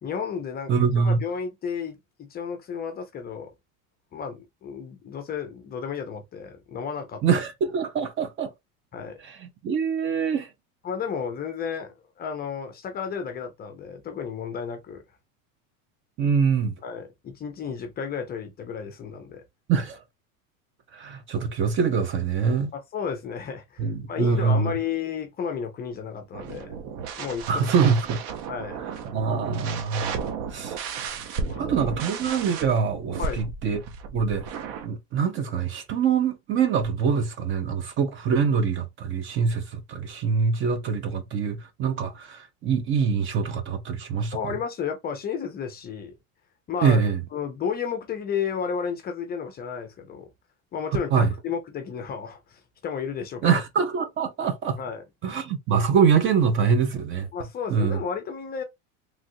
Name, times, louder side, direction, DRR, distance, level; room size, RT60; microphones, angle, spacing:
voice 1, 0.0-3.5 4.1-7.2 8.9-9.2 10.8-15.0 16.8-19.4 22.9-26.8 27.1-27.7 28.5-28.8 31.4-31.9 33.2-33.4 44.3-46.1 46.7-47.0 47.3-50.3 50.7-53.6 54.8-55.0 57.3-58.6, left 6 dB, 25° left, 0.5 m, -32 dB
voice 2, 0.7-1.2 7.2-8.5 9.2-10.5 16.2-16.7 19.7-20.0 20.9-22.7 23.8-24.7 27.5-28.2 29.1-30.2 30.5-30.8 31.6-33.8 34.1-34.5 34.8-44.4 46.8-47.2 51.1-51.3 53.4-54.8 55.2-57.3 57.7-58.0, right 6 dB, 30° right, 0.5 m, -24 dB
sound 1, 26.3-34.9, right 6 dB, 55° right, 0.8 m, -34 dB
3.1 x 2.4 x 2.6 m
supercardioid pair, 130°, 40 cm